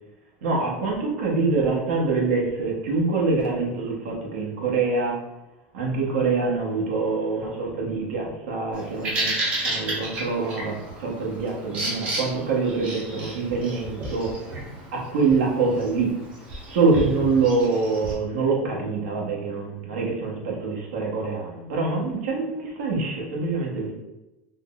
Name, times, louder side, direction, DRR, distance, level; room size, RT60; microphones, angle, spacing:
voice 1, 0.4-5.2 5.7-9.4 9.6-14.3 14.9-16.1 16.7-23.9, right 4 dB, 75° right, -2 dB, 0.9 m, -25 dB
Bird vocalization bird call bird song, 8.7-18.1, right 2 dB, 20° right, 0.6 m, -32 dB
3.6 x 2.1 x 2.3 m, 0.97 s
supercardioid pair, 180°, 6 cm